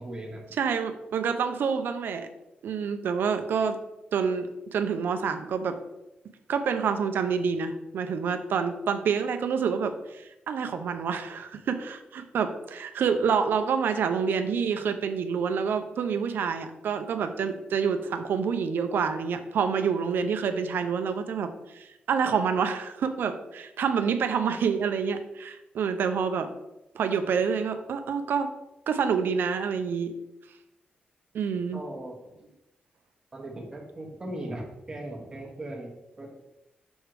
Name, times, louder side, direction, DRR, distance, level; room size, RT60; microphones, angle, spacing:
voice 1, 0.0-0.4 31.7-32.2 33.3-35.9 36.2-36.3, right 1 dB, 20° right, -1 dB, 1.3 m, -38 dB
voice 2, 0.6-2.3 2.6-3.8 4.1-5.8 6.5-26.5 26.9-28.5 28.9-30.1 31.3-31.8, right 6 dB, 80° right, 8 dB, 0.6 m, -27 dB
6.3 x 3.3 x 4.7 m, 0.94 s
wide cardioid pair, 155°, 4 cm